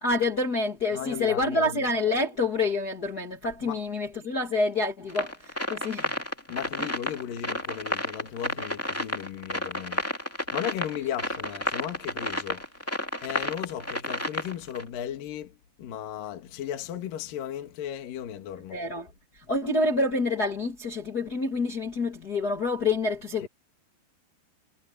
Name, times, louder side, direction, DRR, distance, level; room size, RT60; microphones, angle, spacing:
voice 1, 0.0-6.1 6.8-6.9 18.7-23.5, left 2 dB, 40° left, 1.3 m, -27 dB
voice 2, 0.9-1.9 3.6-3.8 6.5-10.0 10.5-13.0 13.2-18.8 23.4-23.5, left 10 dB, 60° left, 3.3 m, -36 dB
sound 1, 5.1-14.8, left 1 dB, 10° left, 0.8 m, -31 dB
omnidirectional pair, 5.0 m